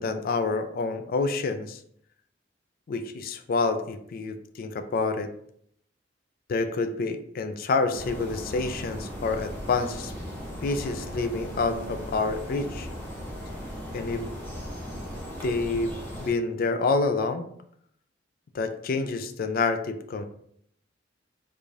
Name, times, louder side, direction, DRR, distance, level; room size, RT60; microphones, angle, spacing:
voice 1, 0.0-1.8 2.9-5.3 6.5-10.1 10.6-12.9 13.9-14.2 15.4-17.5 18.5-20.3, left 3 dB, 50° left, 8 dB, 0.3 m, -28 dB
sound 1, 7.9-16.3, equal, 10° left, 0.8 m, -37 dB
4.7 x 2.6 x 2.4 m, 0.69 s
head